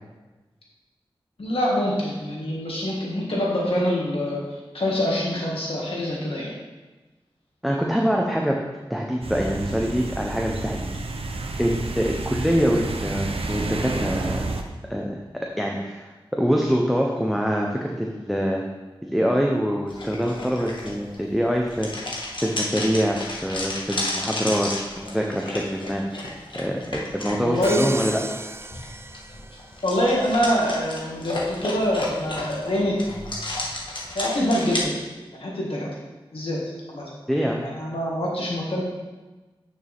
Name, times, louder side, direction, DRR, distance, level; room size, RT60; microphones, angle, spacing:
voice 1, 1.4-4.4 4.7-6.5 27.4-28.0 29.8-32.9 34.1-34.9 35.4-35.9 36.3-36.6 36.9-37.0 37.6-38.8, equal, 75° left, -4 dB, 2.2 m, -25 dB
voice 2, 7.6-8.6 8.9-10.9 11.6-14.4 14.9-15.2 15.6-18.7 19.0-22.2 22.4-26.2 26.5-28.2 37.3-37.6, equal, ahead, -1 dB, 1.0 m, -24 dB
sound 1, 9.2-14.6, right 3 dB, 80° right, 0.7 m, -30 dB
sound 2, 19.9-34.8, left 2 dB, 55° left, 1.7 m, -33 dB
Crash cymbal, 27.6-29.8, right 2 dB, 25° right, 0.3 m, -34 dB
9.2 x 6.3 x 3.7 m, 1.2 s
wide cardioid pair, 50°, 10 cm